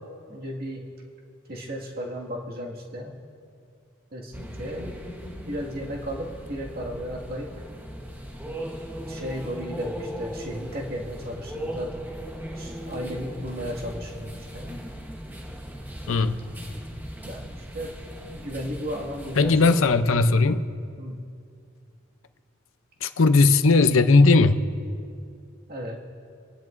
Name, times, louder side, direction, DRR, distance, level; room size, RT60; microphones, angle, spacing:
voice 1, 0.3-0.8 1.5-3.2 4.1-5.0 5.5-7.5 9.0-12.0 12.6-14.8 17.2-17.9 18.2-20.3 21.0-21.2 25.7-26.0, equal, 50° right, -2 dB, 1.9 m, -35 dB
sound 1, 4.3-19.8, equal, 10° right, 1.0 m, -38 dB
voice 2, 19.4-20.6 23.0-24.6, left 3 dB, 80° left, 10 dB, 0.6 m, -18 dB
29.5 x 10.5 x 2.6 m, 2.4 s
head